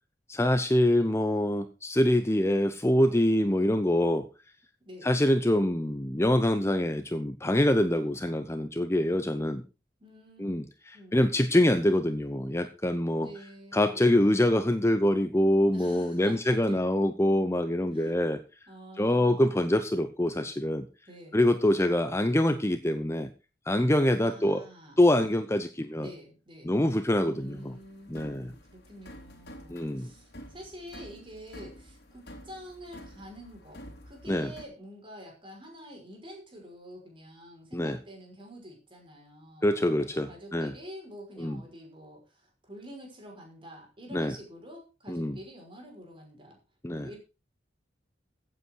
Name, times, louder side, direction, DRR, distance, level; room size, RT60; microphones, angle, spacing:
voice 1, 0.3-4.3 5.0-9.6 10.4-13.3 13.7-18.4 19.0-20.9 21.3-23.3 23.7-24.6 25.0-26.1 26.6-27.7 28.1-28.5 29.7-30.1 34.3-34.5 37.7-38.0 39.6-40.7 41.4-41.6 44.1-44.3 45.1-45.4 46.8-47.1, left 1 dB, 15° left, 9 dB, 0.8 m, -25 dB
voice 2, 4.8-5.1 10.0-10.4 10.9-11.4 13.1-14.2 15.7-16.8 17.9-18.2 18.7-19.6 21.1-21.4 24.2-25.0 26.0-26.7 27.3-46.6 46.9-47.2, equal, 30° right, 1 dB, 5.8 m, -47 dB
sound 1, 27.3-34.6, equal, 60° left, 3.2 m, -49 dB
15.5 x 8.5 x 4.7 m, 0.31 s
head